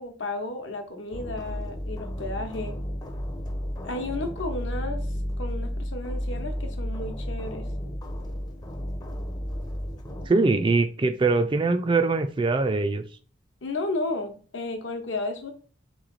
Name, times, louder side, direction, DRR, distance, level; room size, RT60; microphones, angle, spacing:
voice 1, 0.0-2.8 3.8-5.0 5.4-7.6 13.6-15.5, left 2 dB, 75° left, 5 dB, 0.9 m, -33 dB
sound 1, 1.1-10.3, equal, 20° left, 0.5 m, -32 dB
voice 2, 10.3-13.0, right 3 dB, 25° right, 8 dB, 0.3 m, -22 dB
3.5 x 3.1 x 3.9 m, 0.40 s
head